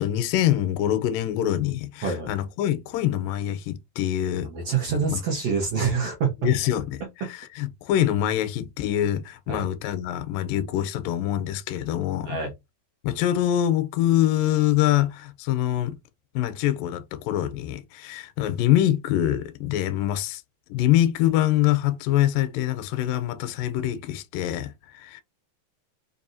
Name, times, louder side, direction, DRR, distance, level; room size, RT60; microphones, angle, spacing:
voice 1, 0.0-4.5 5.1-5.2 6.4-12.4 13.0-16.0 16.4-20.4 20.7-25.2, left 12 dB, 80° left, 2.2 m, -24 dB
voice 2, 4.5-6.3 9.5-9.6 12.2-12.5, right 5 dB, 65° right, 1.5 m, -26 dB
5.4 x 2.6 x 2.6 m
omnidirectional pair, 4.0 m